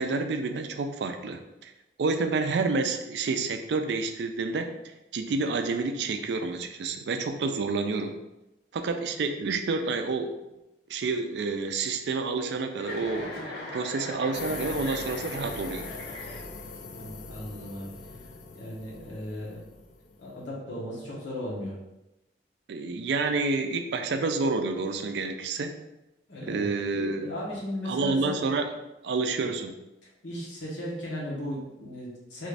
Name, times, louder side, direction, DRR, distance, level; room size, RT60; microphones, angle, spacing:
voice 1, 0.0-1.7 2.0-4.7 5.1-8.1 8.7-10.4 10.9-13.3 13.7-15.9 22.7-25.7 26.5-27.3 27.9-28.7 29.0-29.7, right 3 dB, 65° right, 6 dB, 0.3 m, -29 dB
Chuckle chortle, 12.7-16.8, left 1 dB, 60° left, 0.9 m, -39 dB
sound 1, 14.3-20.5, left 4 dB, 45° left, 0.3 m, -41 dB
voice 2, 16.9-18.2 18.5-19.6 20.2-21.8 26.3-26.7 27.1-28.5 30.2-32.5, left 1 dB, 90° left, -5 dB, 1.1 m, -36 dB
3.0 x 2.5 x 3.3 m, 0.94 s
head